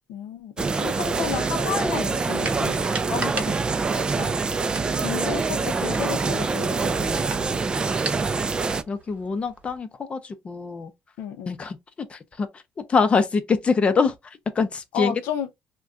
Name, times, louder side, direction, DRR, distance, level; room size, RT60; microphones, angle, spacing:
voice 1, 0.1-3.5 3.9-4.7 5.0-7.4 11.2-11.5 14.9-15.6, left 8 dB, 80° left, 0.5 m, -32 dB
sound 1, 0.6-8.8, right 4 dB, 25° right, 0.3 m, -25 dB
sound 2, 2.4-9.8, right 4 dB, 40° right, 0.9 m, -39 dB
voice 2, 8.9-10.9 11.5-11.8 12.1-12.6 12.9-15.1, left 4 dB, 35° left, 0.5 m, -24 dB
2.4 x 2.2 x 3.6 m
cardioid pair, 100°, 4 cm